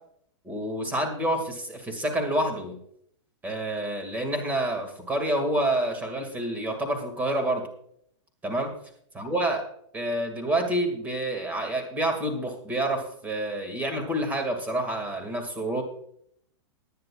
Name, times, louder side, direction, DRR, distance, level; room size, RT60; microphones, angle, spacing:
voice 1, 0.4-2.8 3.4-7.6 8.4-8.7 9.2-9.6 9.9-15.8, right 1 dB, 10° right, 4 dB, 2.1 m, -28 dB
20.0 x 9.6 x 2.4 m, 0.66 s
supercardioid pair, 155°, 15 cm